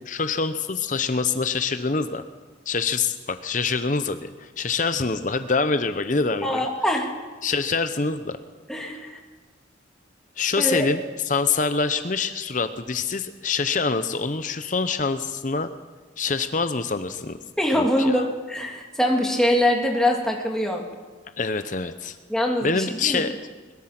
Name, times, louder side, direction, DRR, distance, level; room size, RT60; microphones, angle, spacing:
voice 1, 0.1-2.2 2.7-6.6 7.4-8.4 10.4-11.0 11.3-15.7 16.2-17.4 17.7-18.2 21.4-22.2 22.6-23.3, left 4 dB, 40° left, 10 dB, 0.8 m, -25 dB
voice 2, 6.4-7.1 8.7-9.2 10.6-10.8 17.6-20.8 22.3-23.2, left 1 dB, 5° left, 0 dB, 2.6 m, -23 dB
21.5 x 21.0 x 6.0 m, 1.3 s
head